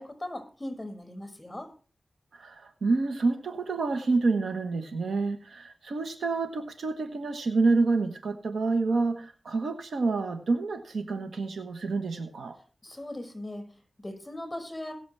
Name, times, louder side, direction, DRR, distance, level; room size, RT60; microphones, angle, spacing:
voice 1, 0.0-1.7 12.8-14.9, left 1 dB, 25° left, 5 dB, 6.1 m, -39 dB
voice 2, 2.3-12.6, right 3 dB, 85° right, 8 dB, 1.3 m, -28 dB
21.0 x 7.0 x 3.4 m, 0.38 s
cardioid pair, 45°, 0 cm